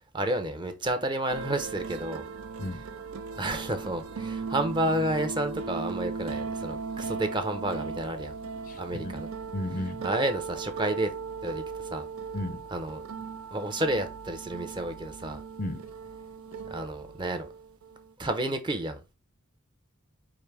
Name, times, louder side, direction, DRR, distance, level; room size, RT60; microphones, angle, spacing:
voice 1, 0.1-2.3 3.4-8.4 8.8-9.3 10.0-11.1 11.4-11.6 11.9-12.1 12.7-13.0 13.5-15.4 16.7-17.5 18.2-19.0, right 1 dB, 20° right, 0.6 m, -30 dB
sound 1, 1.3-18.1, right 5 dB, 80° right, 0.5 m, -38 dB
voice 2, 8.7-9.1 9.5-10.0 12.3-12.6 15.6-15.8, left 1 dB, 40° left, 0.5 m, -34 dB
4.9 x 2.6 x 3.3 m
head